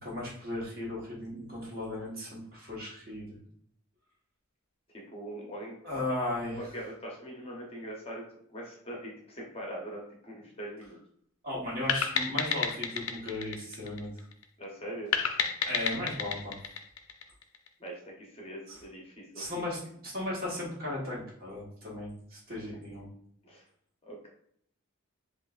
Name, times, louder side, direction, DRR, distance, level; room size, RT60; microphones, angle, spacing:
voice 1, 0.0-3.4 5.8-6.6 11.4-14.2 15.7-16.6 18.7-18.8 19.3-23.1, left 1 dB, 45° right, -4 dB, 1.3 m, -36 dB
voice 2, 5.1-5.8 6.5-8.3 8.5-11.0 14.6-15.2 17.8-19.7 23.4-23.6 24.0-24.3, right 1 dB, 25° left, -2 dB, 0.7 m, -42 dB
sound 1, 11.9-14.4 15.1-17.7, left 7 dB, 85° left, 0.4 m, -31 dB
5.4 x 2.5 x 2.4 m, 0.66 s
head